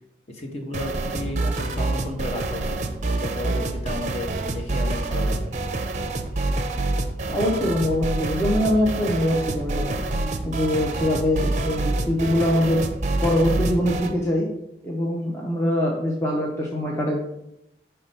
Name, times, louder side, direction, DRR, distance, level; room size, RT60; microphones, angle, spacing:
voice 1, 0.3-2.8 3.1-5.6, left 1 dB, 35° left, 1 dB, 1.0 m, -33 dB
sound 1, 0.7-14.2, right 2 dB, 40° right, 0.5 m, -27 dB
voice 2, 7.3-10.0 10.4-12.8 13.2-14.5 14.8-17.2, left 1 dB, 15° left, -3 dB, 0.7 m, -23 dB
5.8 x 3.3 x 5.3 m, 0.85 s
head